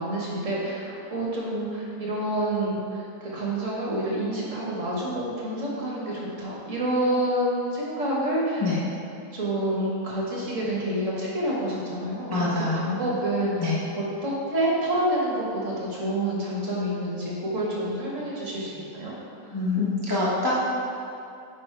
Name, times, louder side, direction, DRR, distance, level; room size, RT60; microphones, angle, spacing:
voice 1, 0.0-8.7 9.3-19.1, right 1 dB, 50° right, -5 dB, 1.5 m, -28 dB
voice 2, 12.3-12.8 13.6-13.8 19.5-20.6, left 3 dB, 20° left, -8 dB, 0.7 m, -25 dB
8.5 x 3.3 x 4.5 m, 2.6 s
omnidirectional pair, 1.9 m